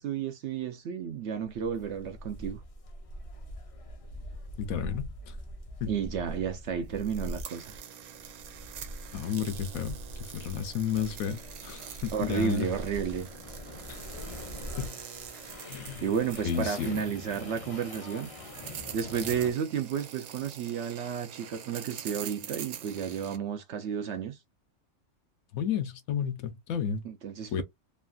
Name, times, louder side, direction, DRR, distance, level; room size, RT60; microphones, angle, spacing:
voice 1, 0.0-2.6 5.9-7.8 12.1-13.3 16.0-18.3 18.9-24.4 27.0-27.6, right 7 dB, 65° right, 0.7 m, -32 dB
sound 1, 1.4-19.5, left 1 dB, 55° left, 0.4 m, -43 dB
voice 2, 4.6-5.3 5.8-5.9 9.1-12.7 13.9-14.1 14.8-14.9 15.6-16.1 16.4-17.0 25.5-27.0 27.5-27.6, left 8 dB, 80° left, 1.1 m, -32 dB
sound 2, 7.0-23.4, right 9 dB, 85° right, 1.1 m, -45 dB
3.1 x 2.5 x 2.3 m
omnidirectional pair, 1.5 m